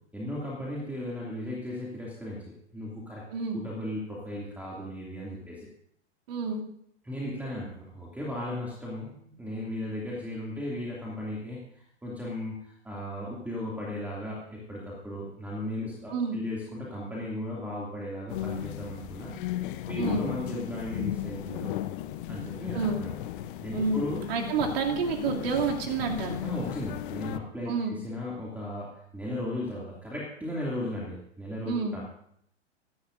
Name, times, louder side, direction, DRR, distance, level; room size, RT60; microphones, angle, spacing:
voice 1, 0.1-3.2 3.5-5.7 7.0-19.3 19.9-21.8 22.3-23.2 23.6-24.2 26.4-32.1, left 1 dB, 5° right, -5 dB, 2.6 m, -36 dB
voice 2, 6.3-6.6 16.1-16.4 20.0-20.3 22.7-23.0 23.7-26.4 27.7-28.0 31.7-32.0, right 5 dB, 55° right, 0 dB, 2.9 m, -29 dB
sound 1, 18.3-27.4, left 13 dB, 45° left, 0.9 m, -35 dB
23.5 x 11.5 x 2.7 m, 0.71 s
figure-of-eight pair, 110°, 36 cm